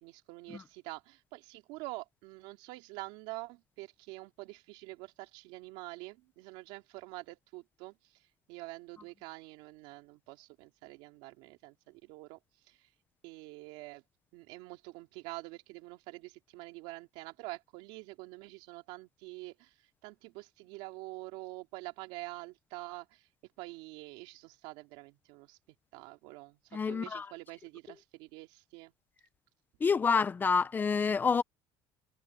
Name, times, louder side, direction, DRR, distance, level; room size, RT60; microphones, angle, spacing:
voice 1, 0.0-12.9 13.2-14.0 14.3-23.3 23.6-25.6 25.9-28.9, right 22 dB, 80° right, 3.0 m, -46 dB
voice 2, 26.7-27.3 29.8-31.4, left 5 dB, 20° left, 0.9 m, -28 dB
cardioid pair, 145°, 9 cm